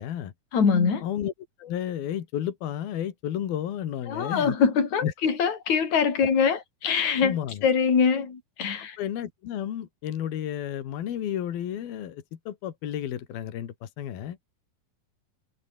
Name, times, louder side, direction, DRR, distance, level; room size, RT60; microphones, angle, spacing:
voice 1, 0.0-0.3 1.0-1.3 1.6-4.6 5.0-5.1 7.2-7.7 9.0-14.4, left 10 dB, 70° left, 3.9 m, -32 dB
voice 2, 0.5-1.0 4.1-9.0, left 6 dB, 45° left, 5.5 m, -23 dB
omnidirectional pair, 4.5 m